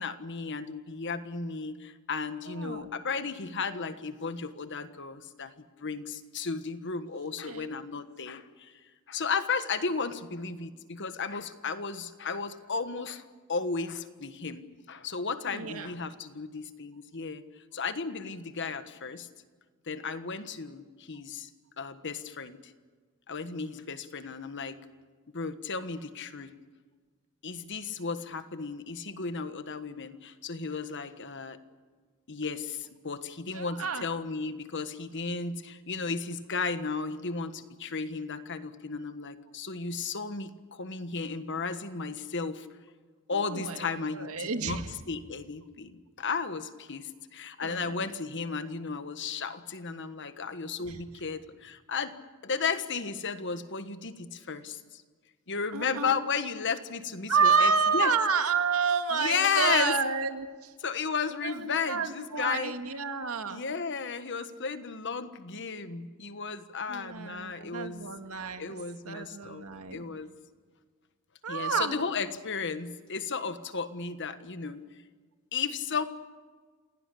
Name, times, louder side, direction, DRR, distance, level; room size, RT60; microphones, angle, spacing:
voice 1, 0.0-8.7 9.1-13.2 13.5-17.4 17.7-19.3 19.9-21.5 21.8-22.7 23.3-24.8 25.3-26.5 27.4-31.6 32.3-42.7 43.3-52.1 52.4-55.0 55.5-58.1 59.1-59.9 60.8-62.7 63.5-68.0 68.6-69.6 69.9-70.3 71.5-74.8 75.5-76.0, left 5 dB, 55° left, 11 dB, 1.4 m, -34 dB
voice 2, 2.5-2.9 7.5-7.7 15.5-15.9 33.5-34.0 43.3-44.9 47.6-48.1 50.8-51.0 55.7-56.2 57.3-60.7 61.4-63.6 66.9-68.8 69.1-70.0 71.4-72.0, right 5 dB, 90° right, 7 dB, 2.0 m, -29 dB
27.5 x 17.5 x 8.5 m, 1.5 s
head